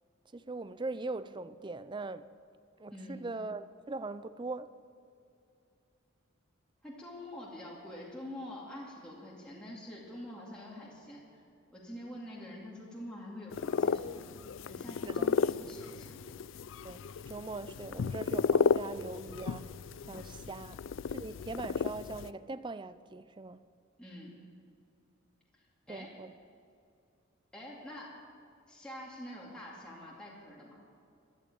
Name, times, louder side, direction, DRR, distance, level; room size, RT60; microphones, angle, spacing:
voice 1, 0.3-2.3 2.8-4.7 15.1-15.3 16.8-19.8 20.0-20.8 21.1-23.6 25.9-26.3, right 3 dB, 25° right, 14 dB, 0.4 m, -41 dB
voice 2, 2.9-3.2 6.8-11.4 11.7-16.2 24.0-24.4 25.5-26.1 27.5-28.1 28.7-30.8, left 1 dB, 5° left, -5 dB, 2.3 m, -46 dB
sound 1, 13.5-22.3, left 5 dB, 70° left, 0.4 m, -33 dB
13.5 x 12.0 x 8.6 m, 2.5 s
head